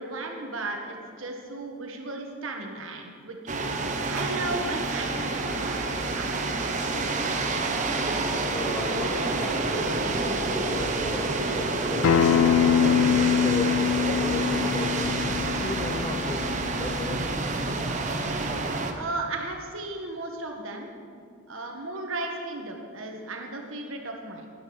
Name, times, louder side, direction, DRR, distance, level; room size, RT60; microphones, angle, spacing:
voice 1, 0.0-3.6 4.1-5.8 6.1-6.3 18.9-24.5, right 2 dB, 70° right, 2 dB, 1.4 m, -35 dB
sound 1, 3.5-18.9, right 3 dB, 35° right, 0.9 m, -28 dB
voice 2, 8.5-12.5 13.0-17.3, left 2 dB, 20° left, 3 dB, 0.6 m, -36 dB
Acoustic guitar, 12.0-17.2, left 8 dB, 80° left, 0.4 m, -24 dB
13.0 x 10.0 x 6.4 m, 2.2 s
head